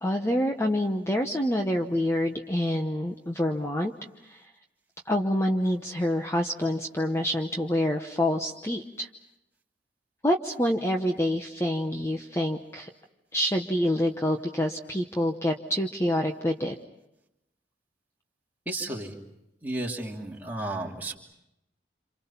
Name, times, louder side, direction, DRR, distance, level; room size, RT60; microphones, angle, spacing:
voice 1, 0.0-3.9 4.2-4.5 5.1-9.1 10.2-12.9 13.3-16.8, left 1 dB, 15° left, 3 dB, 1.0 m, -27 dB
voice 2, 18.7-19.2 19.6-21.2, right 2 dB, 10° right, -2 dB, 2.9 m, -33 dB
28.0 x 28.0 x 5.8 m, 0.87 s
head